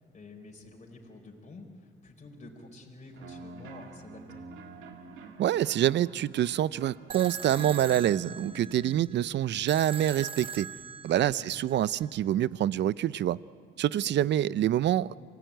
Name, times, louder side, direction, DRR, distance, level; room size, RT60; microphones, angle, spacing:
voice 1, 0.0-4.4 11.1-11.4 13.9-14.1, left 2 dB, 35° left, 0 dB, 4.2 m, -49 dB
sound 1, 3.2-8.9, right 2 dB, 85° right, 2.0 m, -47 dB
voice 2, 5.4-10.7 11.0-13.4 13.8-15.2, right 12 dB, 65° right, 19 dB, 0.5 m, -26 dB
sound 2, 7.1-12.1, right 7 dB, 25° right, 1.0 m, -42 dB
26.5 x 17.5 x 9.1 m, 2.1 s
cardioid pair, 90°, 20 cm